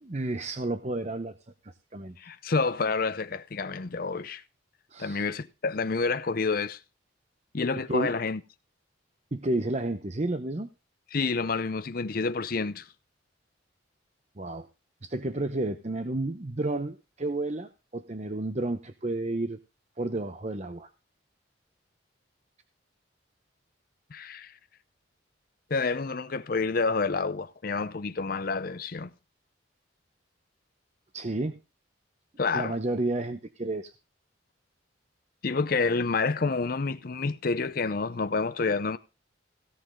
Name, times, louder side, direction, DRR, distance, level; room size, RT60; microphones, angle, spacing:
voice 1, 0.0-1.3 1.6-2.2 4.9-5.3 7.9-8.1 9.3-10.7 14.4-14.7 15.0-19.6 20.0-20.9 31.1-31.6 32.5-33.9, right 2 dB, 35° right, 0.8 m, -31 dB
voice 2, 2.2-4.4 5.0-6.8 7.5-8.4 11.1-12.9 24.1-24.6 25.7-29.1 32.4-32.7 35.4-39.0, left 4 dB, 50° left, 0.6 m, -28 dB
17.0 x 7.7 x 3.7 m
head